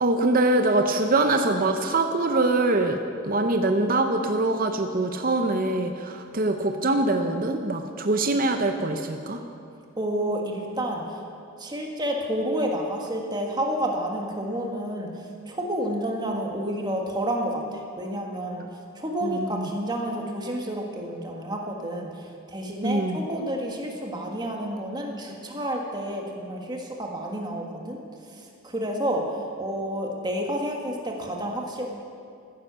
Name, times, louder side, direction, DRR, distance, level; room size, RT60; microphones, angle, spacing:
voice 1, 0.0-9.4 19.2-19.7 22.8-23.2, right 2 dB, 40° right, 5 dB, 0.7 m, -23 dB
voice 2, 10.0-11.0 11.6-15.1 15.5-18.6 18.9-28.0 28.3-29.3 29.6-31.9, right 1 dB, 20° right, 1 dB, 1.6 m, -30 dB
15.0 x 9.9 x 6.8 m, 2.4 s
head